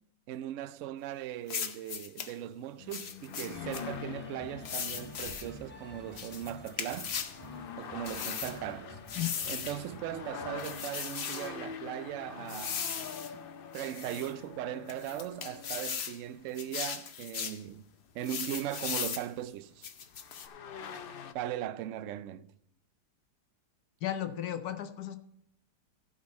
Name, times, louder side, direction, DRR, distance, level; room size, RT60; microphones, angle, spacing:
voice 1, 0.3-7.1 7.8-9.0 9.5-12.8 13.3-13.5 13.7-17.9 18.1-19.9 21.3-22.5, right 12 dB, 70° right, 0.7 m, -39 dB
sound 1, 1.5-2.3 2.9-3.8 4.6-5.5 6.2-7.4 8.1-8.6 9.1-9.8 10.6-11.5 12.5-13.3 13.7-14.3 14.9-16.2 16.6-17.6 18.2-19.3 19.8-20.5, left 7 dB, 50° left, 0.8 m, -38 dB
sound 2, 2.8-18.2 19.5-19.6 20.0-21.3, left 7 dB, 85° left, 0.4 m, -45 dB
sound 3, 3.5-10.9, left 1 dB, 15° left, 0.4 m, -50 dB
voice 2, 24.0-25.2, left 11 dB, 70° left, 1.3 m, -34 dB
15.5 x 5.3 x 5.3 m
omnidirectional pair, 1.8 m